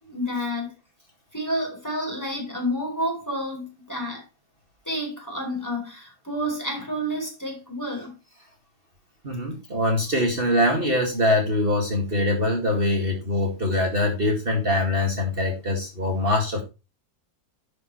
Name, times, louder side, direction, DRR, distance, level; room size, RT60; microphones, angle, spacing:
voice 1, 0.0-0.7 1.3-4.2 4.9-8.1, equal, 10° left, 4.0 m, -29 dB
voice 2, 9.2-16.6, left 1 dB, 35° right, 2.4 m, -23 dB
11.0 x 7.7 x 3.1 m
omnidirectional pair, 1.6 m